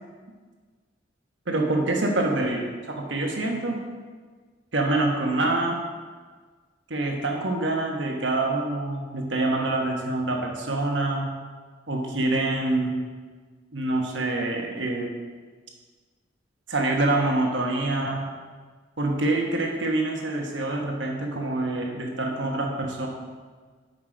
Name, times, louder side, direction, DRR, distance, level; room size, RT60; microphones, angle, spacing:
voice 1, 1.5-3.8 4.7-5.8 6.9-11.3 11.9-13.0 13.7-15.1 16.7-18.3 19.0-23.1, right 2 dB, 75° right, 1 dB, 1.3 m, -26 dB
7.7 x 5.8 x 5.0 m, 1.5 s
head